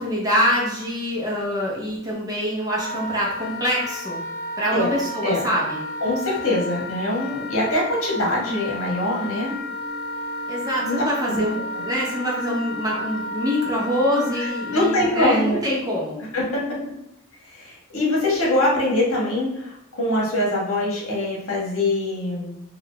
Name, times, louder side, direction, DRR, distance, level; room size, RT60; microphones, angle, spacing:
voice 1, 0.0-4.2 4.6-5.9 10.5-16.2, equal, 15° right, -4 dB, 0.8 m, -25 dB
Wind instrument woodwind instrument, 2.7-15.1, left 2 dB, 45° left, 0.3 m, -32 dB
voice 2, 6.0-9.5 10.8-11.4 14.4-15.6 16.3-16.8 17.5-22.6, left 1 dB, 70° left, -4 dB, 1.3 m, -23 dB
Wind instrument woodwind instrument 2, 9.7-14.4, right 6 dB, 30° left, 1.1 m, -42 dB
3.8 x 2.5 x 3.3 m, 0.84 s
head